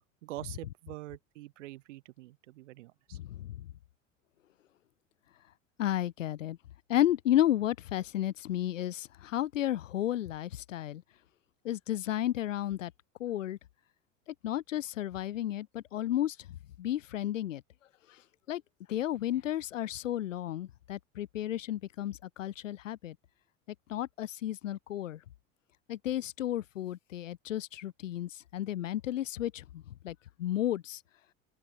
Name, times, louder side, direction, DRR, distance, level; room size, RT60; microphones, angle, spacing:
voice 1, 0.2-3.2, right 17 dB, 75° right, 3.7 m, -45 dB
voice 2, 3.1-3.5 5.8-6.6 6.9-11.0 11.6-12.9 13.2-13.6 14.4-16.4 16.8-17.6 18.5-18.6 18.9-23.1 23.9-25.2 25.9-31.0, left 12 dB, 85° left, 1.2 m, -32 dB
open air
hypercardioid pair, 80°, 37 cm